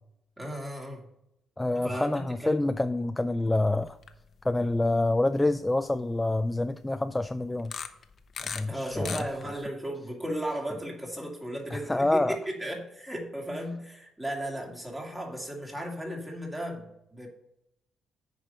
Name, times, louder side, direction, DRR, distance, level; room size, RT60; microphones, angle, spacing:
voice 1, 0.4-1.1 1.7-2.6 8.7-17.3, equal, 15° right, -1 dB, 2.6 m, -35 dB
voice 2, 1.6-4.0 4.4-7.7 8.4-9.3 11.7-12.4, left 2 dB, 15° left, 10 dB, 0.4 m, -27 dB
sound 1, 3.9-4.2 4.6-4.7 5.4-5.5 7.6-8.6 8.9-9.6, left 6 dB, 50° left, 0.8 m, -37 dB
8.7 x 5.3 x 5.3 m, 0.81 s
cardioid pair, 90°, 0 cm